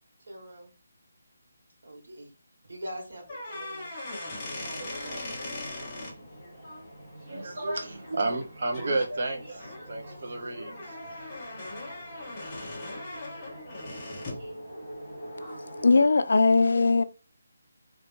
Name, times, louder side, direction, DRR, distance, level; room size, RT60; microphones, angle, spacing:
voice 1, 0.3-0.7 1.8-2.3 2.6-3.9 4.4-5.2, right 1 dB, 70° right, 1.9 m, -43 dB
sound 1, 3.2-6.1 8.3-8.4 8.7-9.1 9.6-14.5, left 2 dB, 15° left, 0.8 m, -39 dB
sound 2, 4.4-16.1, equal, 10° right, 1.2 m, -45 dB
voice 2, 7.3-11.2, right 2 dB, 35° right, 0.6 m, -32 dB
voice 3, 15.8-17.0, left 3 dB, 60° left, 0.4 m, -20 dB
3.1 x 2.7 x 3.5 m
hypercardioid pair, 180°, 0 cm